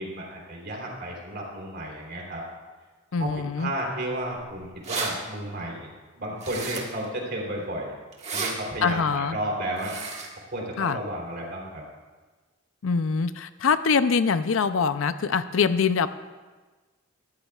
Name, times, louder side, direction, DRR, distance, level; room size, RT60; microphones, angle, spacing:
voice 1, 0.0-2.4 3.2-7.9 8.3-10.0 10.5-11.8, right 1 dB, 60° right, -1 dB, 3.4 m, -33 dB
voice 2, 3.1-3.7 8.8-9.4 10.8-11.0 12.8-16.1, left 5 dB, 85° left, 12 dB, 0.5 m, -24 dB
sound 1, 4.4-4.5 4.6-5.1 6.4-7.0 8.1-8.5 9.8-10.3, right 4 dB, 35° right, 1.7 m, -32 dB
17.5 x 13.5 x 2.4 m, 1.3 s
head